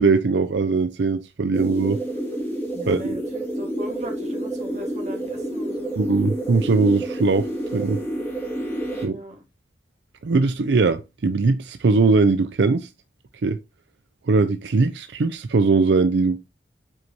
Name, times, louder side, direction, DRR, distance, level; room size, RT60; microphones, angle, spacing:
voice 1, 0.0-2.0 2.9-3.2 6.0-7.5 7.7-8.0 9.0-9.2 10.2-12.9 13.4-13.6 14.3-16.5, right 4 dB, 75° right, 0.5 m, -20 dB
sound 1, 1.5-9.1, right 1 dB, 10° left, 2.7 m, -29 dB
voice 2, 2.7-6.0 9.0-9.4, equal, 40° right, 1.7 m, -37 dB
7.7 x 4.6 x 2.7 m
head